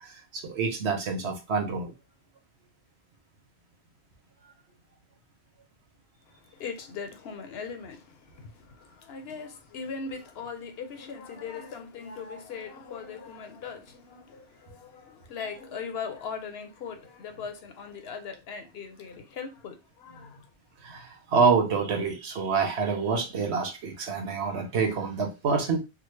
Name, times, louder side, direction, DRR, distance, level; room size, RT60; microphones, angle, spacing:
voice 1, 0.0-1.9 20.8-25.8, right 5 dB, 90° right, 1.1 m, -27 dB
voice 2, 6.3-20.5, left 5 dB, 70° left, 0.9 m, -40 dB
3.6 x 2.1 x 3.1 m
omnidirectional pair, 1.1 m